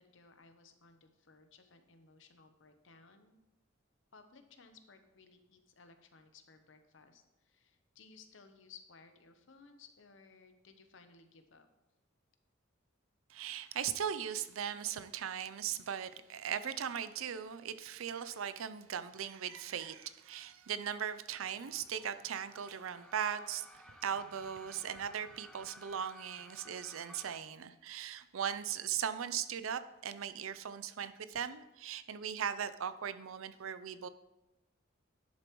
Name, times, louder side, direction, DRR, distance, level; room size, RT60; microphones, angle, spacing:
voice 1, 0.0-3.4 4.1-11.7, left 4 dB, 65° left, 7 dB, 0.8 m, -60 dB
voice 2, 13.3-34.1, right 8 dB, 90° right, 13 dB, 0.5 m, -39 dB
sound 1, 21.4-27.4, equal, 5° left, 0.4 m, -57 dB
10.5 x 6.8 x 3.1 m, 0.97 s
head